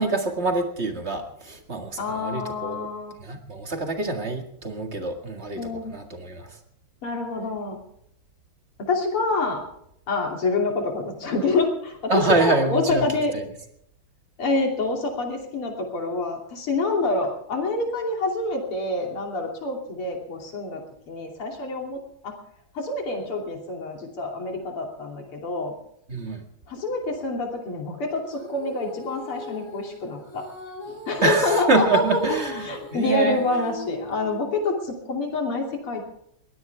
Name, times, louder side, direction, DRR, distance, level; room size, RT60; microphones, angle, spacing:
voice 1, 0.0-2.9 3.2-6.6 12.1-13.4 26.1-26.4 31.2-32.6 32.9-33.4, right 3 dB, 30° right, 4 dB, 2.1 m, -25 dB
voice 2, 2.0-3.1 5.6-6.0 7.0-7.8 8.8-9.6 10.1-13.3 14.4-22.3 22.8-25.7 26.7-30.4 30.9-32.0 32.3-32.4 32.6-36.1, left 3 dB, 90° left, 1 dB, 3.8 m, -27 dB
Female singing, 28.3-34.8, equal, 25° left, 5.9 m, -39 dB
22.0 x 16.5 x 3.5 m, 0.72 s
omnidirectional pair, 2.3 m